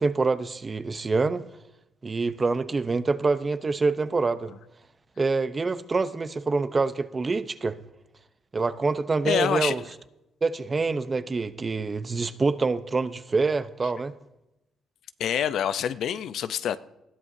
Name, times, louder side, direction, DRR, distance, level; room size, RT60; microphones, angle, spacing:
voice 1, 0.0-1.4 2.0-4.5 5.2-7.8 8.5-9.8 10.4-14.1, right 4 dB, 30° right, 12 dB, 0.8 m, -26 dB
voice 2, 9.2-9.9 15.2-16.8, left 9 dB, 75° left, 13 dB, 0.6 m, -26 dB
20.0 x 14.0 x 2.7 m, 0.92 s
cardioid pair, 90°, 0 cm